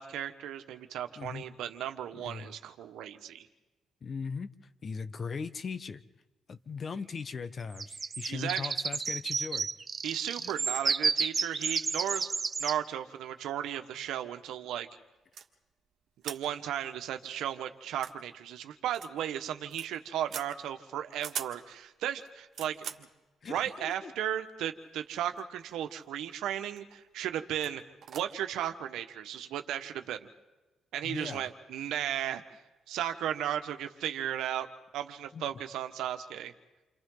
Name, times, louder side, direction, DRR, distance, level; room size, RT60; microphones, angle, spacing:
voice 1, 0.0-3.5 8.3-8.7 10.0-12.3 12.6-14.9 16.2-23.1 23.5-27.8 28.1-30.3 30.9-32.4 32.9-34.7 34.9-36.5, right 10 dB, 85° right, 8 dB, 1.3 m, -35 dB
voice 2, 1.2-1.5 2.1-2.5 4.0-4.5 4.8-6.0 6.5-9.7 10.4-10.6 23.4-24.1 31.0-31.5 35.3-35.5, left 5 dB, 45° left, 12 dB, 1.1 m, -39 dB
sound 1, 7.8-12.8, right 5 dB, 35° right, 0.7 m, -31 dB
sound 2, 15.3-15.5 16.2-16.4 16.8-16.9 17.2-17.3 17.9-18.2 18.9-19.1 19.4-19.9 20.3-20.5 21.1-21.6 22.2-23.1 24.1-24.2 25.0-25.6 25.8-26.3 26.8-27.0 27.6-27.7 28.0-28.2, right 8 dB, 65° right, 1.7 m, -41 dB
30.0 x 26.0 x 4.0 m, 1.1 s
cardioid pair, 90°, 0 cm